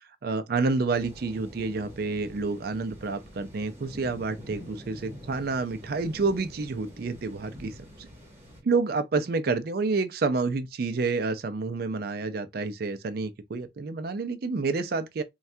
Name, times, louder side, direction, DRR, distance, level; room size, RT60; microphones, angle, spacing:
voice 1, 0.2-7.7 8.6-15.2, right 3 dB, 55° right, 0.4 m, -29 dB
sound 1, 0.9-8.6, equal, 15° right, 0.9 m, -46 dB
3.2 x 2.3 x 2.6 m
head